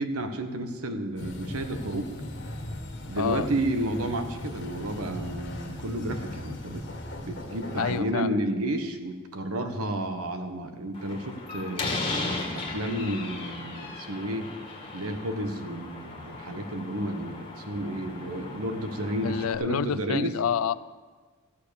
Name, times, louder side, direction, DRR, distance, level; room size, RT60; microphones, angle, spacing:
voice 1, 0.0-2.1 3.1-6.8 7.2-11.9 12.5-14.5 14.9-20.4, right 1 dB, 85° right, 7 dB, 1.2 m, -31 dB
sound 1, 1.2-8.0, left 1 dB, 55° left, 1.7 m, -38 dB
voice 2, 3.2-3.5 7.8-8.4 13.0-13.2 19.2-20.8, left 8 dB, 75° left, 18 dB, 0.4 m, -29 dB
Slam, 10.9-19.6, left 2 dB, 25° left, 1.8 m, -36 dB
14.5 x 7.1 x 6.8 m, 1.4 s
head